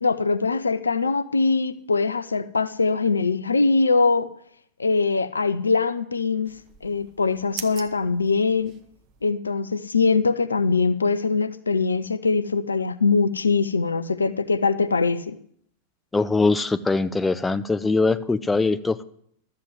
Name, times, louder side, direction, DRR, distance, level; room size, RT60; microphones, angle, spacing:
voice 1, 0.0-4.3 4.8-6.5 6.8-8.8 9.2-15.4, left 4 dB, 75° left, 12 dB, 0.6 m, -22 dB
sound 1, 6.4-9.2, right 9 dB, 35° right, 1.0 m, -42 dB
voice 2, 16.1-19.0, left 3 dB, 10° left, 11 dB, 0.7 m, -22 dB
12.5 x 7.6 x 7.9 m, 0.68 s
figure-of-eight pair, 90°, 0 cm